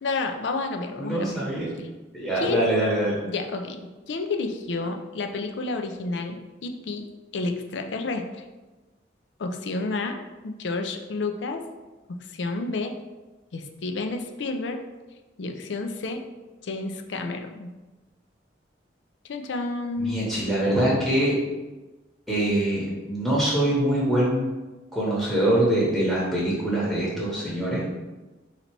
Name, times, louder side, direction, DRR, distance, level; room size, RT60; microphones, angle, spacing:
voice 1, 0.0-1.3 1.8-1.9 2.4-2.7 3.3-3.8 4.1-7.1 7.3-8.4 9.4-11.6 12.3-12.9 13.5-14.8 15.4-16.2 16.6-17.7 19.3-20.2, left 3 dB, 70° left, 5 dB, 0.5 m, -30 dB
voice 2, 1.0-1.7 2.1-3.2 20.0-21.3 22.3-24.5 24.9-27.8, right 1 dB, ahead, -7 dB, 0.9 m, -24 dB
3.9 x 2.8 x 4.5 m, 1.2 s
head